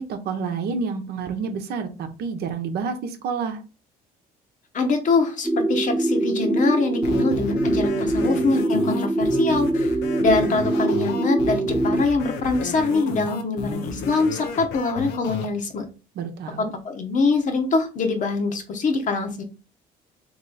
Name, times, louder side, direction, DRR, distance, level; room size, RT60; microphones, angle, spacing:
voice 1, 0.0-3.6 16.2-16.7, right 5 dB, 70° right, 7 dB, 0.8 m, -29 dB
voice 2, 4.7-9.9 10.2-15.9 16.6-19.4, left 3 dB, 50° left, 6 dB, 1.0 m, -24 dB
sound 1, 5.4-12.0, right 2 dB, 5° right, 0.4 m, -23 dB
sound 2, 7.0-15.5, left 5 dB, 85° left, 0.7 m, -32 dB
3.3 x 3.1 x 3.9 m, 0.32 s
cardioid pair, 110°, 17 cm